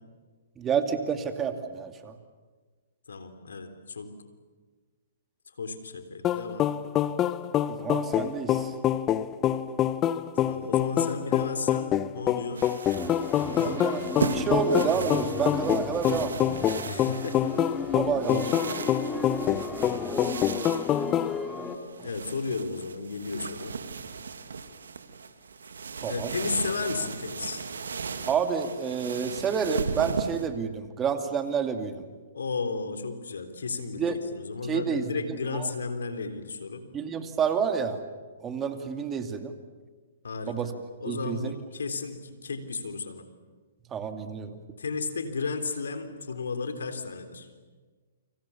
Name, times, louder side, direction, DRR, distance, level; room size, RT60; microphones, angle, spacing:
voice 1, 0.6-2.1 7.7-8.7 13.6-14.0 14.3-16.4 17.9-18.5 22.0-22.1 26.0-26.3 28.3-32.1 34.0-34.2 34.7-35.1 35.5-35.7 36.9-38.0 38.4-39.5 40.5-40.7 41.0-41.5 43.9-44.6, right 6 dB, 20° right, 7 dB, 2.5 m, -29 dB
voice 2, 3.1-4.1 5.6-6.7 10.4-12.7 13.5-14.0 16.8-17.6 22.0-23.7 26.1-27.6 32.3-36.8 40.2-40.7 41.0-43.2 44.8-47.5, left 4 dB, 80° left, 9 dB, 3.6 m, -34 dB
sound 1, 6.2-21.3, left 11 dB, 25° left, 1.0 m, -26 dB
sound 2, 12.5-30.5, right 5 dB, 80° right, 2.4 m, -37 dB
Young musicians before the performance, 12.9-21.8, left 3 dB, 10° left, 2.7 m, -35 dB
29.5 x 26.0 x 7.2 m, 1.4 s
hypercardioid pair, 130°, 0 cm